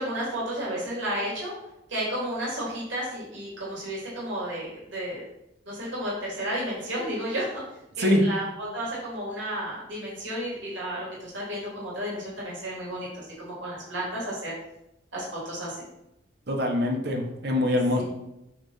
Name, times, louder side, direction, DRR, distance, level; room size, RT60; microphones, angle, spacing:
voice 1, 0.0-1.6 1.9-5.2 5.7-7.6 8.0-14.5 15.1-15.9 17.9-18.0, equal, 85° right, -6 dB, 3.1 m, -32 dB
voice 2, 16.5-18.0, left 1 dB, 60° right, 2 dB, 1.4 m, -24 dB
8.7 x 3.5 x 5.8 m, 0.86 s
head